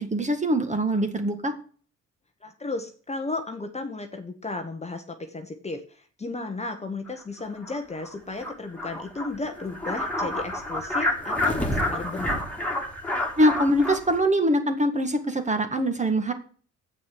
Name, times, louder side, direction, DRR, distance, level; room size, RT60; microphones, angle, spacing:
voice 1, 0.0-1.5 13.4-16.3, right 1 dB, 25° right, 6 dB, 1.9 m, -23 dB
voice 2, 2.4-12.4, left 3 dB, 20° left, 6 dB, 1.2 m, -34 dB
sound 1, 7.1-7.2 7.6-7.8 8.0-8.1 8.4-8.5 8.8-14.2, left 1 dB, 5° left, 2.4 m, -29 dB
7.8 x 6.0 x 7.6 m, 0.43 s
cardioid pair, 90°, 30 cm